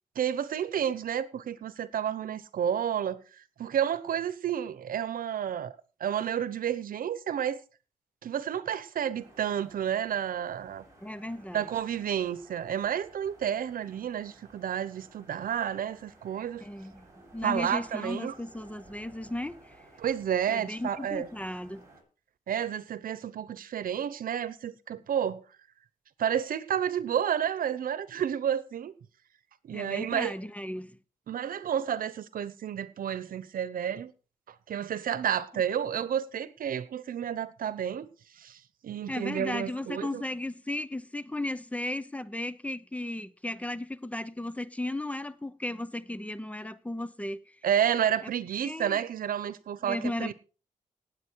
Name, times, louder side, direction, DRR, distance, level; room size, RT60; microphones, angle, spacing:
voice 1, 0.2-5.7 6.0-7.6 8.2-10.8 11.5-16.6 17.4-18.3 20.0-21.3 22.5-25.4 26.2-28.9 29.6-30.4 31.3-34.1 34.5-38.1 38.4-40.2 47.6-50.3, right 9 dB, 85° right, 0.9 m, -31 dB
sound 1, 9.2-22.0, right 2 dB, 20° right, 6.6 m, -56 dB
voice 2, 11.0-11.6 16.6-17.1 17.3-19.8 20.5-21.9 29.7-30.9 39.1-47.6 48.6-49.0 49.8-50.3, left 1 dB, 10° left, 0.7 m, -35 dB
18.5 x 8.1 x 4.7 m
wide cardioid pair, 125°, 14 cm